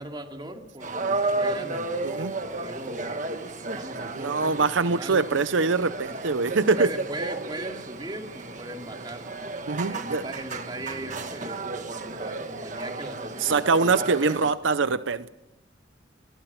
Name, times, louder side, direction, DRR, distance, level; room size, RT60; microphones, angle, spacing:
voice 1, 0.0-3.2 3.7-5.3 6.0-9.3 9.9-14.1, right 1 dB, 25° right, 3 dB, 2.6 m, -39 dB
sound 1, 0.8-14.5, right 3 dB, 40° right, 1.6 m, -33 dB
voice 2, 2.0-2.3 4.1-6.9 9.7-10.2 13.4-15.3, right 4 dB, 80° right, 13 dB, 0.7 m, -23 dB
26.0 x 22.0 x 6.0 m, 0.93 s
head